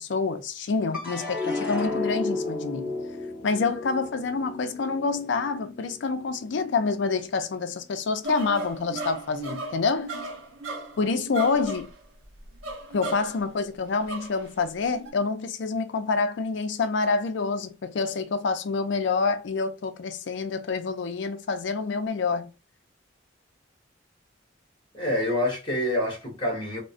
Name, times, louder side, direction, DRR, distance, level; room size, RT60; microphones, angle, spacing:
voice 1, 0.0-2.9 3.4-10.1 11.0-11.9 12.9-22.5, left 4 dB, 65° left, 0.4 m, -27 dB
sound 1, 0.9-7.4 7.8-8.5, left 2 dB, 5° right, 1.0 m, -34 dB
sound 2, 8.2-13.4 14.0-14.5 14.9-15.1, right 2 dB, 85° right, 0.7 m, -36 dB
voice 2, 24.9-26.8, left 1 dB, 25° left, 1.4 m, -27 dB
3.6 x 2.1 x 2.4 m
head